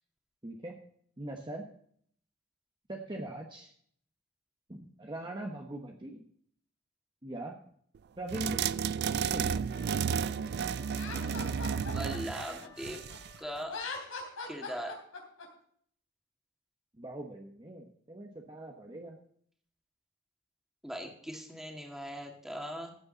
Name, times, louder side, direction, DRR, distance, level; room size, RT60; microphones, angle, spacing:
voice 1, 0.4-0.8 1.2-1.7 2.9-3.7 4.7-6.2 7.2-7.6 8.2-8.6 9.3-9.6 17.0-19.2, right 1 dB, 25° right, 1 dB, 1.2 m, -41 dB
sound 1, 8.3-13.4, right 7 dB, 55° right, 0.4 m, -32 dB
Wind instrument woodwind instrument, 9.7-13.7, left 7 dB, 25° left, 3.1 m, -57 dB
Laughter, 10.9-13.2 13.6-15.5, left 4 dB, 85° left, 3.4 m, -41 dB
voice 2, 11.9-13.1 13.4-13.8 14.5-15.0 20.8-22.9, equal, ahead, 2 dB, 2.2 m, -40 dB
15.0 x 8.9 x 4.0 m, 0.62 s
head